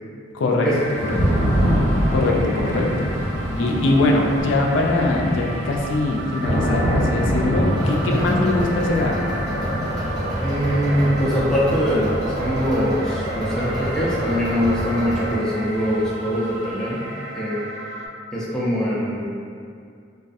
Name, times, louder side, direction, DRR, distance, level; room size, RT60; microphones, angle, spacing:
voice 1, 0.3-0.7 1.0-1.2 2.1-3.1 3.6-9.8, left 2 dB, 80° left, -1 dB, 0.3 m, -22 dB
sound 1, 0.6-18.1, right 2 dB, 75° right, 0.3 m, -35 dB
Thunder / Rain, 0.7-16.4, equal, 45° right, 1.2 m, -26 dB
sound 2, 7.8-15.3, equal, 20° right, 0.8 m, -28 dB
voice 2, 10.4-17.1 17.4-17.7 18.3-19.3, equal, 5° left, -8 dB, 0.4 m, -23 dB
2.5 x 2.3 x 2.4 m, 2.3 s
head